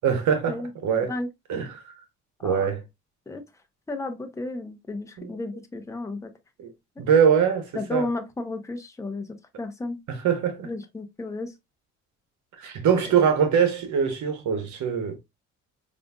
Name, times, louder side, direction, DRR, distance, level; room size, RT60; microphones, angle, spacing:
voice 1, 0.0-1.1 1.5-1.9 2.4-2.8 5.2-5.3 6.6-6.7 7.0-8.1 10.1-10.7 12.6-15.2, right 7 dB, 75° right, 1.0 m, -23 dB
voice 2, 3.9-6.3 7.7-9.3 9.6-10.0 10.6-11.5, left 2 dB, 10° left, 0.6 m, -32 dB
4.9 x 2.5 x 2.3 m
cardioid pair, 90°, 30 cm